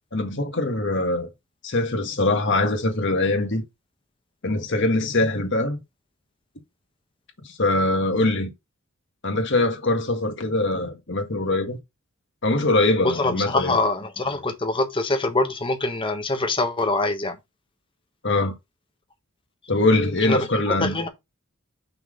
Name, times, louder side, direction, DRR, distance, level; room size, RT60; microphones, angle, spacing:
voice 1, 0.1-1.3 1.6-3.6 4.4-5.8 7.4-8.5 9.2-11.8 12.4-13.8 18.2-18.5 19.7-21.0, left 2 dB, 55° left, 1.7 m, -22 dB
voice 2, 13.0-17.3 20.2-20.4 20.8-21.1, left 2 dB, 25° left, 1.3 m, -24 dB
5.8 x 4.0 x 5.0 m
head